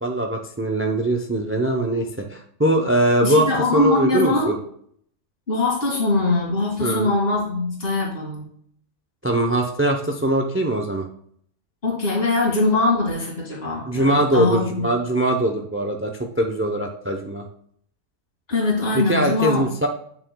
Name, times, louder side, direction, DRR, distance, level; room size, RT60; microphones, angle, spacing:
voice 1, 0.0-4.6 6.8-7.1 9.2-11.1 13.9-17.5 18.9-19.9, right 1 dB, 20° right, 3 dB, 0.3 m, -22 dB
voice 2, 3.2-4.5 5.5-8.5 11.8-14.9 18.5-19.7, left 3 dB, 45° left, -6 dB, 2.5 m, -22 dB
9.3 x 7.1 x 2.3 m, 0.63 s
omnidirectional pair, 1.4 m